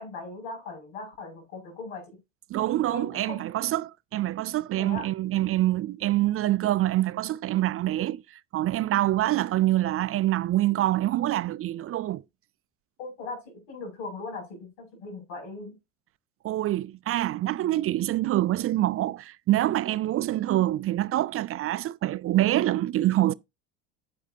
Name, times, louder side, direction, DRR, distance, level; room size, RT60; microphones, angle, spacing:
voice 1, 0.0-2.2 2.9-3.4 4.8-5.1 13.0-15.7, left 3 dB, 75° left, 6.6 m, -39 dB
voice 2, 2.5-12.2 16.4-23.3, right 15 dB, 40° right, 0.5 m, -26 dB
10.0 x 8.5 x 2.8 m
hypercardioid pair, 75°, 34 cm